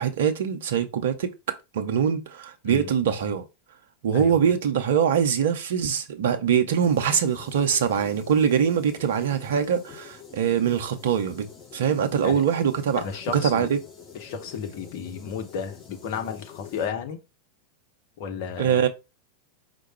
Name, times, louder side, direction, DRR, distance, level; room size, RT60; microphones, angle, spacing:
voice 1, 0.0-3.4 4.0-11.4 11.7-13.0 13.4-13.8 18.6-18.9, right 8 dB, 60° right, 0.7 m, -23 dB
sound 1, 6.8-16.9, left 7 dB, 20° left, 1.9 m, -46 dB
voice 2, 12.9-13.7 14.1-17.2 18.2-18.9, left 7 dB, 50° left, 0.9 m, -33 dB
4.7 x 2.2 x 4.3 m
figure-of-eight pair, 90°, 0 cm